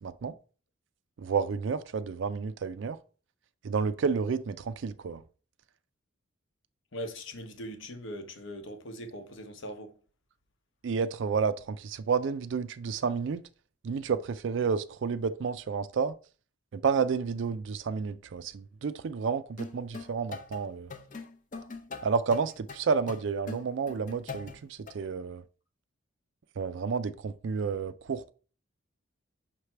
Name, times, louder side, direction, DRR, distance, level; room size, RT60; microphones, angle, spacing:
voice 1, 0.0-0.3 1.2-3.0 3.6-5.2 10.8-13.4 13.8-16.2 16.7-20.9 22.0-25.4 26.6-28.3, right 5 dB, 60° right, 0.4 m, -30 dB
voice 2, 6.9-9.9, equal, 70° left, 1.0 m, -40 dB
sound 1, 19.6-24.9, left 4 dB, 40° left, 0.6 m, -42 dB
5.8 x 3.3 x 5.6 m
head